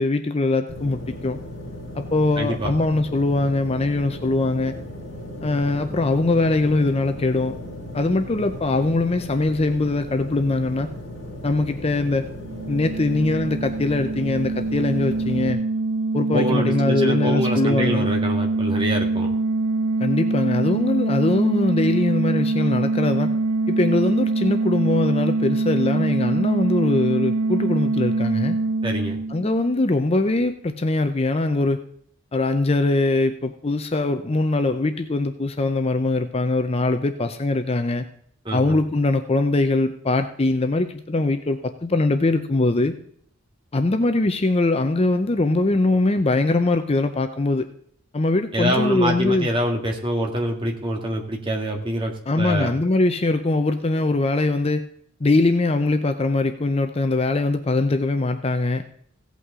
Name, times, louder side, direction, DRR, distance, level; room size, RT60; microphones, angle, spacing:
voice 1, 0.0-1.4 1.9-4.7 5.4-7.6 7.9-10.9 11.4-12.3 12.7-15.6 16.1-18.1 20.0-23.3 23.7-28.6 29.3-31.8 32.3-38.0 38.5-43.0 43.7-47.6 48.1-49.5 52.3-54.8 55.2-58.8, left 2 dB, 30° left, 8 dB, 0.5 m, -22 dB
sound 1, 0.7-15.5, left 1 dB, 55° left, 5.5 m, -36 dB
voice 2, 2.4-2.7 16.3-19.3 28.8-29.2 38.4-38.8 48.5-52.7, equal, 25° right, 1 dB, 1.8 m, -25 dB
sound 2, 12.4-29.9, right 3 dB, 70° right, 0.8 m, -24 dB
16.0 x 8.4 x 3.7 m, 0.62 s
head